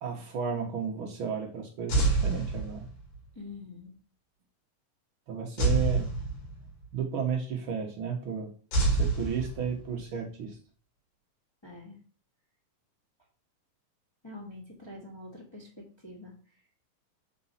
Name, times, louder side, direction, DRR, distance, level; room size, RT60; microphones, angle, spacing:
voice 1, 0.0-2.9 5.3-6.1 6.9-8.5 8.9-10.6, right 6 dB, 65° right, 1 dB, 1.3 m, -33 dB
sound 1, 1.9-3.2 5.6-6.9 8.7-10.0, right 3 dB, 90° left, 4.0 m, -27 dB
voice 2, 3.3-3.9 11.6-12.0 14.2-16.3, left 2 dB, 15° left, -2 dB, 1.1 m, -45 dB
6.8 x 4.1 x 5.6 m, 0.40 s
omnidirectional pair, 3.9 m